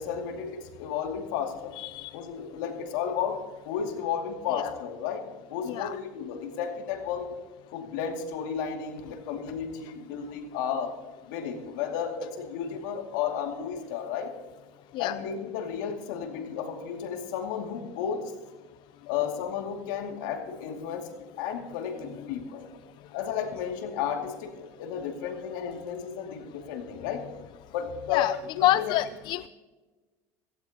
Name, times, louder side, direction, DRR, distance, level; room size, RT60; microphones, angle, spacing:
voice 1, 0.0-1.8 2.1-7.4 7.7-10.9 11.2-14.3 15.0-18.3 19.1-21.1 21.4-22.7 23.1-27.3 27.7-29.0, left 7 dB, 80° left, 3 dB, 2.5 m, -33 dB
voice 2, 1.8-2.2 4.5-4.6 5.7-5.9 14.9-15.1 28.1-28.3 28.6-29.5, left 14 dB, 55° left, 15 dB, 0.4 m, -27 dB
17.0 x 16.5 x 2.9 m, 1.3 s
supercardioid pair, 105°, 10 cm